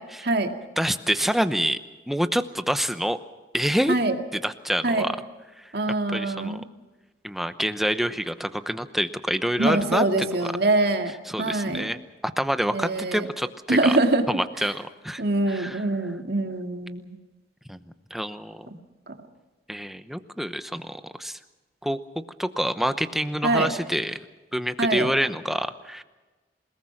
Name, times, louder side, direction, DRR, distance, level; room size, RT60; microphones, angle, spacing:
voice 1, 0.8-1.8 2.1-3.2 3.5-3.9 4.3-5.2 5.6-5.7 6.1-6.6 7.2-10.5 11.1-14.0 14.3-15.9 17.7-17.8 18.1-18.7 19.7-21.4 21.8-24.2 24.5-26.0, equal, ahead, 10 dB, 0.8 m, -27 dB
voice 2, 5.7-6.6 9.6-11.1 11.4-11.9 12.7-13.2 13.7-14.2 15.2-17.1 23.4-23.7 24.8-25.1, right 2 dB, 55° right, 5 dB, 2.2 m, -24 dB
28.0 x 19.0 x 5.9 m, 1.2 s
head